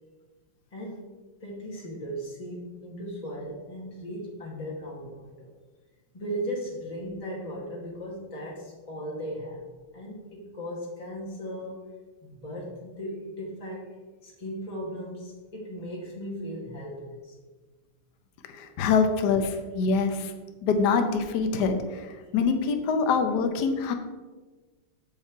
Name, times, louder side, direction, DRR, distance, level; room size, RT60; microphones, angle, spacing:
voice 1, 1.4-5.5 6.1-9.7 9.9-11.8 12.2-13.8 14.2-17.4, equal, 25° left, -4 dB, 0.8 m, -37 dB
voice 2, 18.5-20.3 20.6-23.9, left 5 dB, 65° left, 6 dB, 1.1 m, -25 dB
7.4 x 5.6 x 4.5 m, 1.3 s
omnidirectional pair, 2.3 m